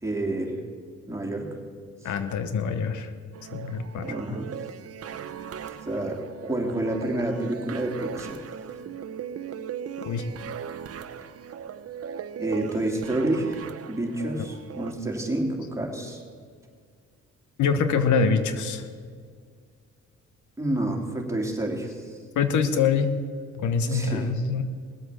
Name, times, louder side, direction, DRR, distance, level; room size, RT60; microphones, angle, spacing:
voice 1, 0.0-0.6 1.1-1.5 4.0-4.5 5.9-8.5 12.4-16.2 20.6-22.2 23.9-24.3, right 1 dB, 10° right, 0 dB, 2.9 m, -29 dB
voice 2, 2.0-3.1 3.5-4.1 10.0-10.3 17.6-18.9 22.4-23.1 23.6-24.6, left 5 dB, 75° left, 9 dB, 1.2 m, -24 dB
sound 1, 3.3-14.9, right 8 dB, 50° right, 0.8 m, -38 dB
19.0 x 8.0 x 7.5 m, 2.1 s
cardioid pair, 90°, 30 cm